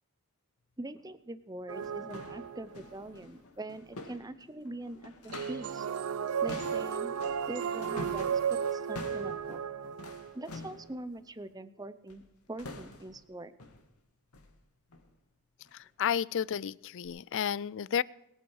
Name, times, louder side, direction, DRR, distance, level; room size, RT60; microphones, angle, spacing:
voice 1, 0.8-5.9 6.4-7.1 7.5-9.6 10.3-12.2 12.5-13.5, right 1 dB, 15° right, 13 dB, 0.7 m, -43 dB
sound 1, 1.0-1.1 1.6-5.8 6.1-10.9 12.1-12.3 12.6-13.2 13.6-13.9 14.3-14.6 14.9-15.1 15.6-15.8 16.3-16.4 17.0-17.1, left 2 dB, 80° left, 2.3 m, -47 dB
sound 2, 1.7-3.0 5.3-10.6, right 7 dB, 70° right, 0.5 m, -34 dB
voice 2, 16.0-18.0, left 8 dB, 60° left, 22 dB, 0.4 m, -31 dB
22.5 x 8.9 x 4.8 m, 0.88 s
head